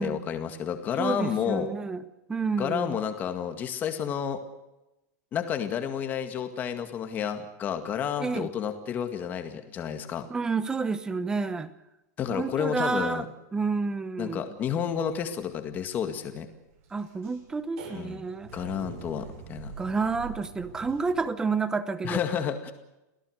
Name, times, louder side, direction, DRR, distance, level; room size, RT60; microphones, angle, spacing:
voice 1, 0.0-1.7 2.6-4.4 5.3-10.3 12.2-13.3 14.2-16.5 18.0-18.2 18.5-19.7 22.0-22.7, left 8 dB, 20° left, 7 dB, 2.0 m, -30 dB
voice 2, 1.0-2.0 2.3-3.0 8.2-8.5 10.3-11.7 12.3-13.2 13.5-14.5 16.9-18.5 19.8-22.2, right 4 dB, 5° right, 14 dB, 0.9 m, -29 dB
sound 1, 14.7-21.2, right 6 dB, 50° right, 7.5 m, -45 dB
27.5 x 17.5 x 6.6 m, 0.96 s
supercardioid pair, 180°, 10 cm